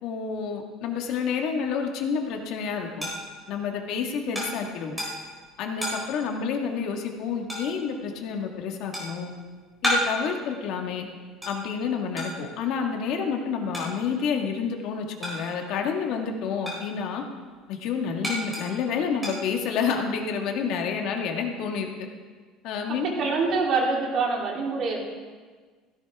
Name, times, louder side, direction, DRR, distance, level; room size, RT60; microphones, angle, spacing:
voice 1, 0.0-3.1 3.5-5.0 5.6-9.3 9.8-11.1 11.4-17.2 17.7-21.9 22.6-23.1, left 6 dB, 55° left, 2 dB, 1.6 m, -29 dB
sound 1, 2.0-15.8 16.1-20.0, equal, 5° right, 3.9 m, -34 dB
voice 2, 22.9-25.0, right 4 dB, 40° right, -2 dB, 3.1 m, -25 dB
16.5 x 16.0 x 3.6 m, 1.5 s
cardioid pair, 165°, 0 cm